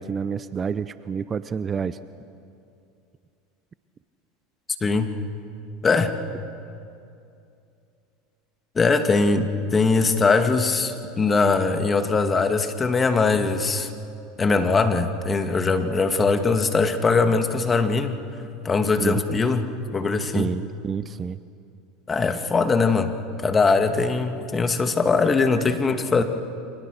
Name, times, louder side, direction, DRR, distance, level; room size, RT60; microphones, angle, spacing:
voice 1, 0.0-2.0 19.0-19.4 20.3-21.4, right 6 dB, 30° right, 14 dB, 0.7 m, -28 dB
voice 2, 4.8-5.1 5.8-6.1 8.8-13.9 14.4-18.2 18.6-20.5 22.1-23.2 23.4-26.2, left 4 dB, 25° left, 7 dB, 2.2 m, -21 dB
29.5 x 25.0 x 6.6 m, 2.6 s
hypercardioid pair, 90°, 0 cm